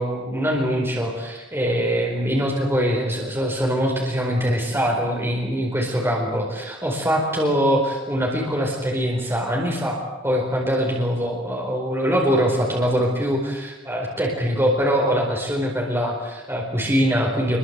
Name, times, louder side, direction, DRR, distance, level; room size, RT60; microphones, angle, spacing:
voice 1, 0.0-17.6, equal, 10° right, -1 dB, 4.6 m, -23 dB
27.0 x 23.0 x 8.2 m, 1.1 s
head